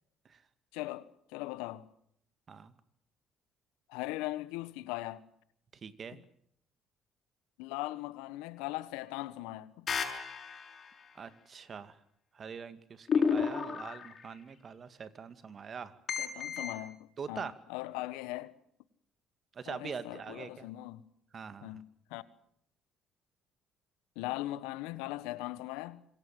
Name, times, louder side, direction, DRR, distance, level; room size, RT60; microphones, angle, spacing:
voice 1, 0.7-1.9 3.9-5.2 6.1-6.2 7.6-9.9 16.2-18.5 19.7-21.1 21.6-22.2 24.1-26.1, left 17 dB, 80° left, 1.4 m, -40 dB
voice 2, 5.8-6.2 11.2-12.0 12.3-16.0 17.2-17.6 19.6-20.7 21.3-21.8, right 6 dB, 45° right, 2.3 m, -43 dB
sound 1, 9.9-10.9 13.1-14.2 16.1-16.8, left 6 dB, 50° left, 7.2 m, -31 dB
26.5 x 23.0 x 7.8 m
hypercardioid pair, 60°, 0 cm